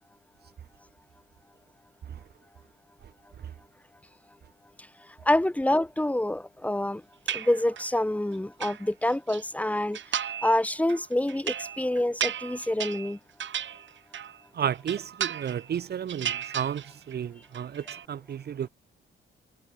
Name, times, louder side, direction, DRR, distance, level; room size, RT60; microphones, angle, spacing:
voice 1, 5.3-7.0 7.3-10.0 10.4-13.2, left 1 dB, 5° left, 1.9 m, -26 dB
sound 1, 7.3-8.0 8.3-9.4 9.9-10.6 10.9-14.4 14.7-15.8 16.1-17.2 17.4-18.0, right 9 dB, 70° right, 4.6 m, -34 dB
voice 2, 14.5-18.7, right 9 dB, 55° right, 0.8 m, -33 dB
cardioid pair, 100°, 20 cm